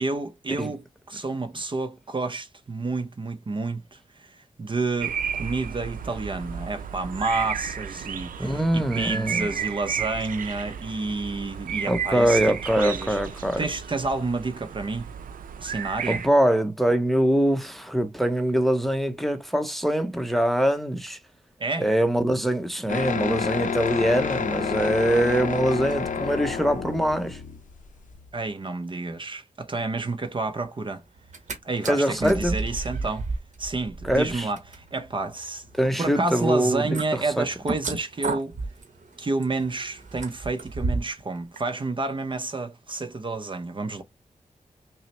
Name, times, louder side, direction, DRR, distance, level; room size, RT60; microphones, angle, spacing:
voice 1, 0.0-12.4 12.8-13.2 13.6-15.1 15.6-16.2 21.6-21.9 28.3-31.0 31.6-33.2 33.6-35.6 36.0-38.5 39.2-44.0, right 3 dB, 35° right, 0.6 m, -30 dB
sound 1, 5.0-16.3, right 7 dB, 85° right, 0.4 m, -33 dB
voice 2, 8.4-9.5 11.9-13.6 16.1-21.2 21.8-27.4 31.9-32.6 34.0-34.5 35.8-37.5, right 1 dB, ahead, 0.7 m, -23 dB
sound 2, 22.9-28.3, left 6 dB, 70° left, 0.7 m, -29 dB
sound 3, 31.2-31.6 31.8-41.2 41.6-41.7, right 3 dB, 60° right, 1.0 m, -33 dB
5.5 x 2.0 x 3.1 m
wide cardioid pair, 80°, 14 cm